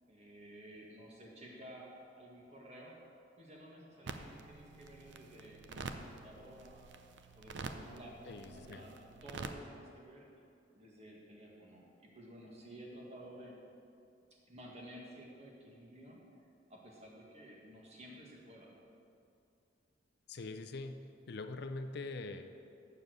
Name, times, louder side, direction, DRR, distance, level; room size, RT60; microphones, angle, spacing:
voice 1, 0.1-3.0 3.4-6.9 7.3-8.9 9.2-10.3 10.7-13.6 14.3-16.2 16.7-18.7, equal, 35° right, -2 dB, 1.8 m, -53 dB
Bowed string instrument, 3.9-6.9, right 2 dB, 15° right, 2.4 m, -64 dB
sound 1, 4.0-9.5, right 3 dB, 65° right, 0.6 m, -47 dB
voice 2, 8.3-8.8 20.3-21.0 21.3-22.4, left 3 dB, 60° left, 7 dB, 0.5 m, -43 dB
7.3 x 6.8 x 7.9 m, 2.5 s
head